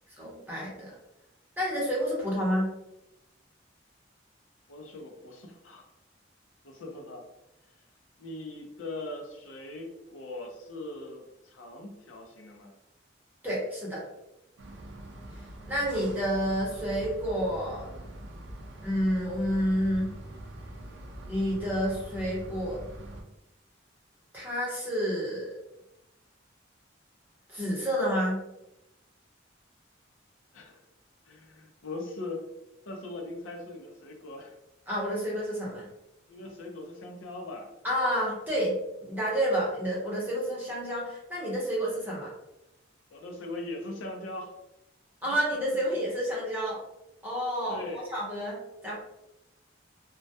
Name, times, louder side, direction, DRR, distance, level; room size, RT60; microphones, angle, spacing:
voice 1, 0.2-0.9 1.6-2.7 13.4-14.0 15.7-17.9 18.8-20.1 21.2-22.8 24.3-25.5 27.5-28.4 34.9-35.9 37.8-38.7 39.0-42.3 45.2-46.8 47.2-47.8 48.1-48.9, equal, 10° right, -6 dB, 0.7 m, -29 dB
voice 2, 4.7-5.9 6.6-7.2 8.2-12.7 30.5-30.8 31.3-32.4 32.9-34.5 36.3-37.7 43.1-44.5 47.7-48.1, left 2 dB, 80° left, 2 dB, 0.5 m, -40 dB
sound 1, 14.6-23.2, right 1 dB, 70° right, 0.4 m, -43 dB
2.2 x 2.1 x 2.6 m, 0.90 s
head